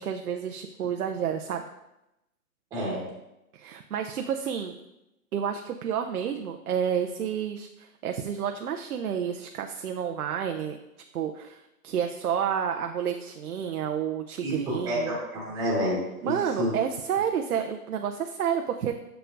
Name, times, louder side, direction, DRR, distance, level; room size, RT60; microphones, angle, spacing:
voice 1, 0.0-1.6 3.5-4.7 5.3-10.8 11.1-11.6 11.8-15.1 16.2-19.0, right 8 dB, 70° right, 4 dB, 0.6 m, -30 dB
voice 2, 2.7-3.0 14.4-16.7, equal, 10° right, -6 dB, 1.2 m, -29 dB
6.8 x 6.7 x 2.5 m, 0.91 s
hypercardioid pair, 160°, 47 cm